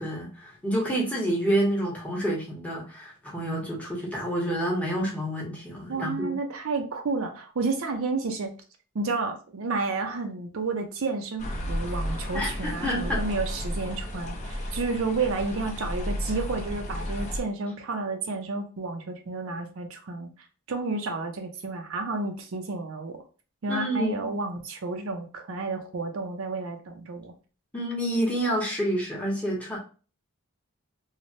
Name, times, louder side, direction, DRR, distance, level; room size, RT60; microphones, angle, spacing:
voice 1, 0.0-6.4 12.3-13.2 23.7-24.3 27.7-29.8, right 1 dB, 5° left, -3 dB, 0.8 m, -28 dB
voice 2, 5.9-8.5 8.9-20.3 20.7-23.2 23.6-27.3, right 3 dB, 65° right, 4 dB, 0.5 m, -31 dB
sound 1, 11.4-17.4, equal, 30° left, 0.6 m, -33 dB
3.1 x 2.1 x 2.6 m, 0.35 s
head